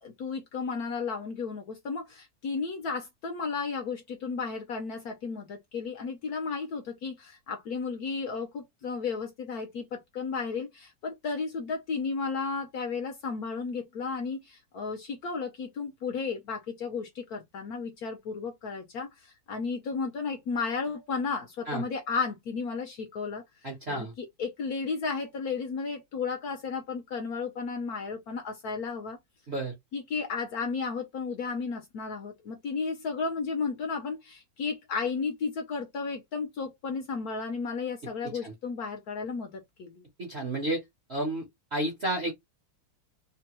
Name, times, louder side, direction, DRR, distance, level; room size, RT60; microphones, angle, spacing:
voice 1, 0.0-19.1 19.5-23.4 23.9-29.2 29.9-40.0, left 4 dB, 65° left, 1.0 m, -33 dB
voice 2, 23.6-24.1 29.5-29.7 38.4-38.5 40.2-40.8 41.1-41.5 41.7-42.3, right 1 dB, 50° right, 0.8 m, -31 dB
3.2 x 2.2 x 2.9 m
omnidirectional pair, 2.1 m